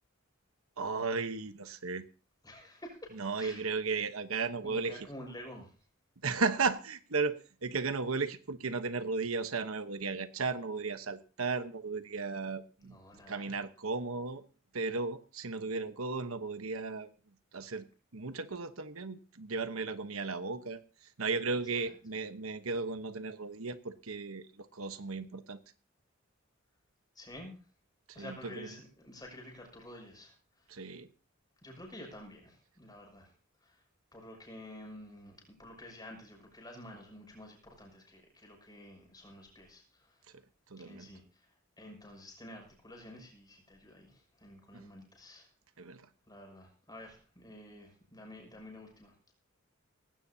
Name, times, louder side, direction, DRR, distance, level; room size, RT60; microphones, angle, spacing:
voice 1, 0.8-2.0 3.1-5.1 6.2-7.4 7.6-13.0 13.3-14.4 14.7-17.1 17.5-17.9 18.1-25.6 28.1-28.7 30.7-31.1 40.7-41.1 44.7-44.9 45.8-46.1, right 4 dB, 85° right, 10 dB, 1.1 m, -35 dB
voice 2, 2.4-3.6 4.6-5.7 12.8-13.5 27.1-27.5 28.1-30.3 31.6-33.3 33.6-33.8 34.1-39.8 40.8-41.2 41.8-45.5 46.3-49.1, left 1 dB, 20° left, 1 dB, 6.4 m, -50 dB
18.5 x 17.0 x 2.8 m, 0.36 s
head